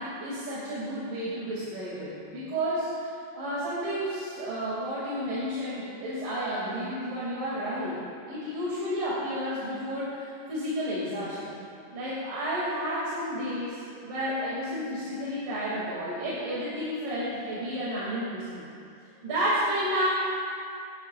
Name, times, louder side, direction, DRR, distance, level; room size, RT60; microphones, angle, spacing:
voice 1, 0.0-8.0 8.3-11.5 11.9-18.6 19.2-20.1, equal, 80° right, -9 dB, 4.1 m, -31 dB
24.0 x 12.5 x 2.5 m, 2.5 s
omnidirectional pair, 3.7 m